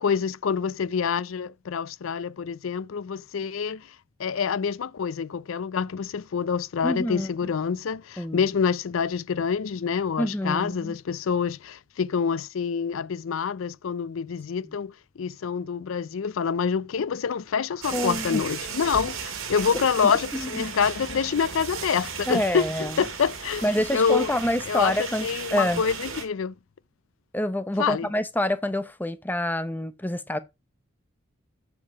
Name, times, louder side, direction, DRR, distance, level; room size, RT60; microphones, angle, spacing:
voice 1, 0.0-3.9 4.2-23.7 23.9-24.3 24.7-25.0 25.2-26.5 27.8-28.1, left 6 dB, 70° left, 0.4 m, -27 dB
voice 2, 6.8-7.3 8.2-8.5 10.2-11.0 14.6-14.8 17.9-18.4 20.0-20.7 22.3-23.0 23.6-25.8 27.3-30.4, left 1 dB, 10° left, 0.6 m, -27 dB
sound 1, 17.8-26.2, right 6 dB, 75° right, 2.0 m, -36 dB
8.5 x 5.1 x 4.6 m
head